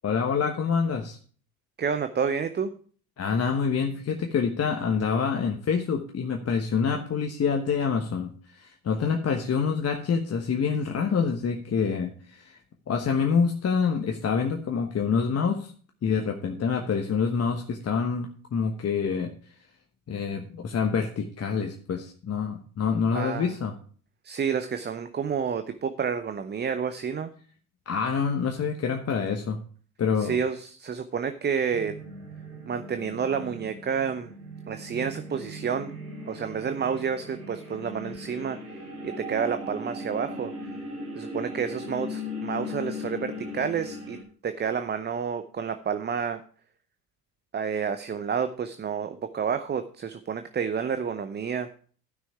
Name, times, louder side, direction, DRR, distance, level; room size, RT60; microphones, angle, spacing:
voice 1, 0.0-1.2 3.2-12.6 12.9-15.7 16.0-19.3 20.1-23.8 27.9-29.6 30.0-30.4, left 6 dB, 35° left, 3 dB, 1.2 m, -26 dB
voice 2, 1.8-2.7 23.1-23.5 24.2-27.3 30.2-31.9 32.7-34.3 34.7-36.0 36.3-40.7 41.1-44.2 44.4-46.4 47.5-51.7, right 6 dB, 25° right, 10 dB, 0.7 m, -30 dB
sound 1, 31.7-44.2, left 1 dB, 90° right, 2.9 m, -38 dB
12.5 x 6.3 x 4.6 m, 0.44 s
figure-of-eight pair, 55°, 44 cm